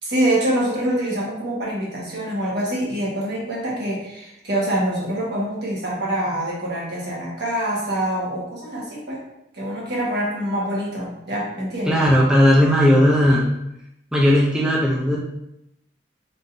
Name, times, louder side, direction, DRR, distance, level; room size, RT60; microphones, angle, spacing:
voice 1, 0.0-9.2 9.5-12.0, right 1 dB, 65° right, -4 dB, 1.4 m, -25 dB
voice 2, 11.9-13.5 14.1-15.2, equal, 5° right, -5 dB, 0.5 m, -16 dB
3.9 x 3.7 x 2.6 m, 0.83 s
head